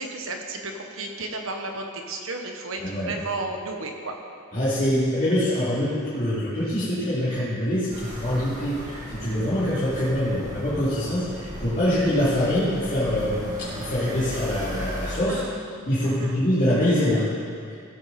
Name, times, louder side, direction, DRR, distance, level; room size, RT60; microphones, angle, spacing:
voice 1, 0.0-4.1 15.3-15.6 16.0-16.4, right 2 dB, 65° right, 3 dB, 1.2 m, -33 dB
voice 2, 2.8-3.1 4.5-15.4 15.9-17.3, left 1 dB, 40° left, -13 dB, 2.9 m, -24 dB
sound 1, 7.9-15.2, equal, 35° right, 2.0 m, -36 dB
16.5 x 8.0 x 4.3 m, 2.3 s
head